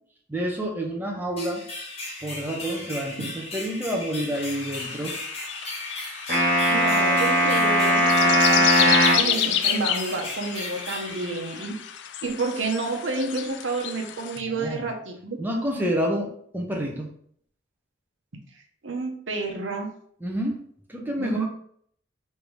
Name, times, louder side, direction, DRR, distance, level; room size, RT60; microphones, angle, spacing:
voice 1, 0.3-1.6 2.2-5.2 14.4-14.9 15.4-17.1 20.2-20.6 20.9-21.5, equal, 10° right, 0 dB, 0.6 m, -29 dB
sound 1, 1.4-12.1, left 2 dB, 30° left, 1.0 m, -37 dB
sound 2, 4.3-14.4, left 10 dB, 65° left, 0.3 m, -30 dB
sound 3, 6.3-9.3, equal, 55° right, 1.5 m, -19 dB
voice 2, 6.7-11.8 12.2-15.4 18.8-19.9 21.2-21.5, right 3 dB, 90° right, 2 dB, 0.9 m, -30 dB
3.3 x 2.7 x 4.6 m, 0.62 s
head